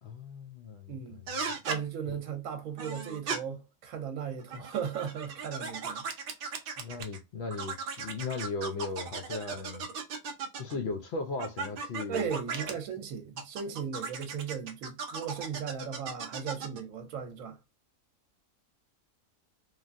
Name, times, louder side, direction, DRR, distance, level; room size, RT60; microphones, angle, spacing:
voice 1, 0.0-1.6 2.0-2.2 6.8-9.9 10.6-12.8, left 3 dB, 65° left, 0.7 m, -37 dB
voice 2, 0.9-1.2 1.7-6.0 12.1-17.6, right 7 dB, 80° right, 1.0 m, -37 dB
sound 1, 1.3-1.8 2.8-3.4 4.4-7.2 7.5-10.8 11.4-12.7 13.4-16.8, right 5 dB, 60° right, 0.6 m, -37 dB
3.2 x 2.3 x 2.5 m
omnidirectional pair, 1.4 m